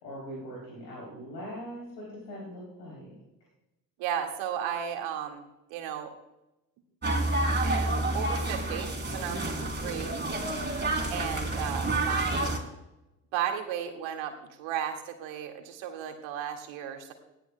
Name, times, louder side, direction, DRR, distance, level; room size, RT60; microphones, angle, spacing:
voice 1, 0.0-3.1 9.3-9.6, equal, 80° left, -5 dB, 3.5 m, -41 dB
voice 2, 4.0-5.4 5.7-6.1 7.6-10.1 11.1-12.6 13.3-14.3 14.6-17.1, right 9 dB, 65° right, 4 dB, 2.1 m, -34 dB
sound 1, 7.0-12.6, right 2 dB, 20° right, 3.2 m, -29 dB
20.0 x 16.0 x 2.2 m, 0.95 s
figure-of-eight pair, 45°, 50 cm